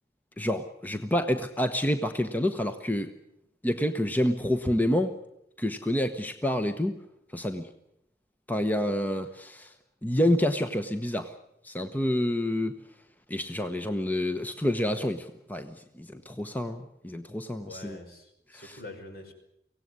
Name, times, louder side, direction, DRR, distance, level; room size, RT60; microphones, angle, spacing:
voice 1, 0.4-3.1 3.6-5.1 5.6-7.0 7.3-7.7 8.5-9.7 10.0-11.3 11.6-12.8 13.3-18.0 18.5-18.8, left 1 dB, 10° left, 8 dB, 1.0 m, -28 dB
voice 2, 17.6-19.3, left 2 dB, 60° left, 5 dB, 5.3 m, -45 dB
24.5 x 17.5 x 9.7 m, 0.79 s
head